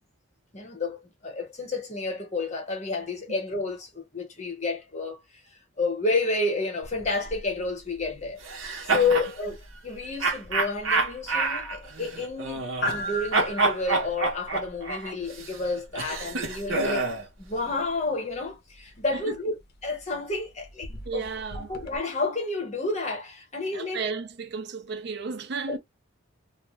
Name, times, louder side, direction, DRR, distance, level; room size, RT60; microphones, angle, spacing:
voice 1, 0.5-5.2 5.8-8.4 8.8-9.6 9.8-17.0 17.4-19.5 19.8-21.3 21.5-24.0 25.7-25.8, left 3 dB, 35° left, 1.0 m, -30 dB
sound 1, 6.8-22.0, equal, 50° left, 0.6 m, -41 dB
sound 2, 8.4-9.3 10.2-13.1 13.3-17.3, right 3 dB, 80° right, 1.0 m, -28 dB
voice 2, 8.9-9.3 19.1-19.4 21.1-21.7 23.7-25.8, right 5 dB, 55° right, 0.4 m, -34 dB
2.4 x 2.3 x 3.0 m
head